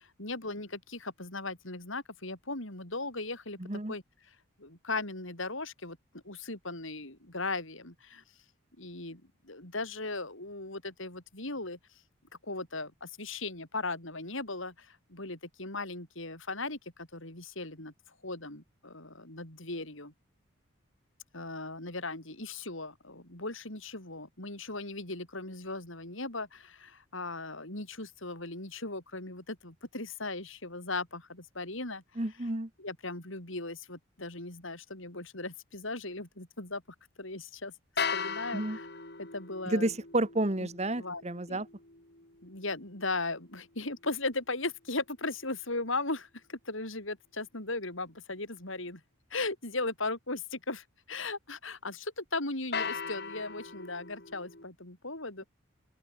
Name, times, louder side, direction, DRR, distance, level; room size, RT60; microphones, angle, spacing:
voice 1, 0.0-3.6 3.9-6.0 6.2-8.2 8.8-11.8 12.4-17.9 18.2-20.1 21.3-32.0 32.8-36.8 37.2-37.7 38.1-38.9 39.2-39.9 41.0-41.2 41.5-41.6 42.4-49.0 49.3-55.5, left 3 dB, 70° left, 6.5 m, -37 dB
voice 2, 3.6-3.9 32.2-32.7 38.5-38.8 39.7-41.7, right 1 dB, 30° right, 1.5 m, -31 dB
sound 1, 38.0-44.1 52.7-54.7, left 5 dB, 50° left, 4.1 m, -39 dB
open air
head